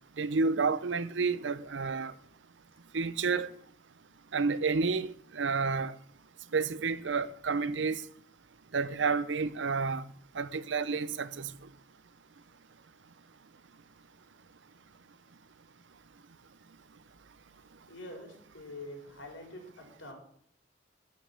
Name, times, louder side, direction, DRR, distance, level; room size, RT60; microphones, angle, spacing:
voice 1, 0.2-2.1 2.9-3.5 4.3-6.0 6.5-8.0 8.7-10.0 10.3-11.5, right 4 dB, 75° right, 0.7 m, -30 dB
voice 2, 17.5-20.1, left 1 dB, 85° left, 4.4 m, -46 dB
13.5 x 5.3 x 8.8 m
head